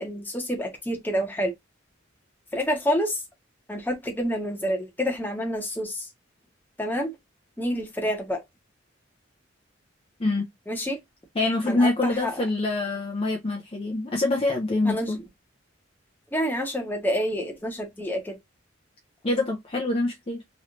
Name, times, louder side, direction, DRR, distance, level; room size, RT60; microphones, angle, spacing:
voice 1, 0.0-1.5 2.5-3.2 3.7-6.1 6.8-7.1 7.6-8.4 10.7-11.0 11.7-12.4 14.8-15.1 16.3-18.4, equal, 10° left, 1.0 m, -28 dB
voice 2, 11.3-15.2 19.2-20.4, left 2 dB, 30° left, 0.6 m, -25 dB
3.2 x 3.1 x 2.5 m
head